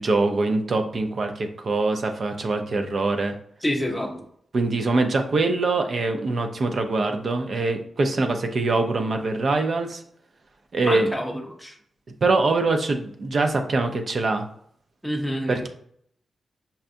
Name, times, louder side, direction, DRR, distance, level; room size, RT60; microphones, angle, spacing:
voice 1, 0.0-3.4 4.5-10.0 10.7-11.1 12.2-14.5 15.5-15.7, right 3 dB, 55° right, 5 dB, 0.5 m, -23 dB
voice 2, 3.6-4.3 10.8-11.8 15.0-15.7, equal, ahead, 1 dB, 0.7 m, -28 dB
5.5 x 2.3 x 2.6 m, 0.66 s
cardioid pair, 90°, 0 cm